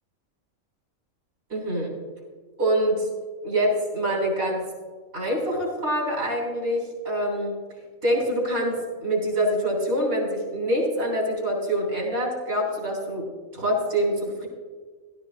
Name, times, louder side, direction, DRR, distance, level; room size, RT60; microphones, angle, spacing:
voice 1, 1.5-1.9 2.6-3.1 3.4-4.6 5.1-7.5 8.0-13.3 13.5-14.5, right 1 dB, 80° right, -2 dB, 3.7 m, -25 dB
16.5 x 12.5 x 2.6 m, 1.5 s
omnidirectional pair, 1.4 m